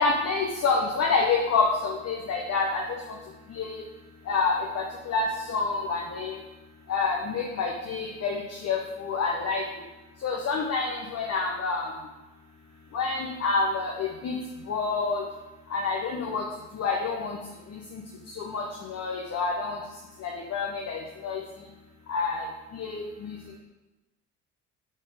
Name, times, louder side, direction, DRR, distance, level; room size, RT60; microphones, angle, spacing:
voice 1, 0.0-2.8 3.5-3.8 4.3-6.4 6.9-9.6 10.2-11.9 12.9-14.4 14.7-15.2 15.7-16.4 16.7-17.4 17.7-18.0 18.3-19.8 20.2-21.4 22.1-22.5 22.7-23.4, left 4 dB, 40° left, 0 dB, 1.0 m, -28 dB
5.4 x 4.3 x 5.0 m, 1.1 s
hypercardioid pair, 60°, 38 cm